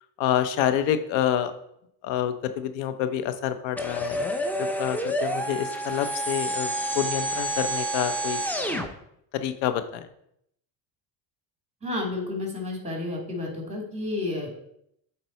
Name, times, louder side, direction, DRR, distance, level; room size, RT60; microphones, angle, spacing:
voice 1, 0.2-1.5 2.0-4.3 4.6-8.4 8.7-8.9 9.3-10.1, left 10 dB, 75° left, 10 dB, 0.9 m, -27 dB
sound 1, 3.8-8.9, right 1 dB, 5° left, 0.7 m, -29 dB
voice 2, 11.8-14.5, left 2 dB, 15° right, 0 dB, 2.6 m, -31 dB
8.0 x 4.1 x 4.5 m, 0.75 s
supercardioid pair, 80°, 46 cm